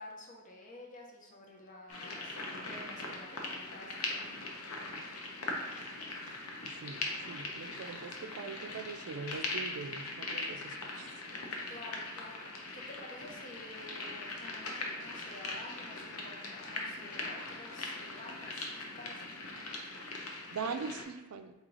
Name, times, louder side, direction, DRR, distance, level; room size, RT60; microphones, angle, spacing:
voice 1, 0.0-4.4 11.6-12.4 12.7-19.2, left 2 dB, 40° left, 0 dB, 0.7 m, -50 dB
sound 1, 1.9-21.0, left 2 dB, 75° left, 0.7 m, -41 dB
voice 2, 6.7-11.1 20.5-21.5, right 5 dB, 80° right, 9 dB, 0.4 m, -42 dB
4.0 x 3.1 x 3.7 m, 1.1 s
head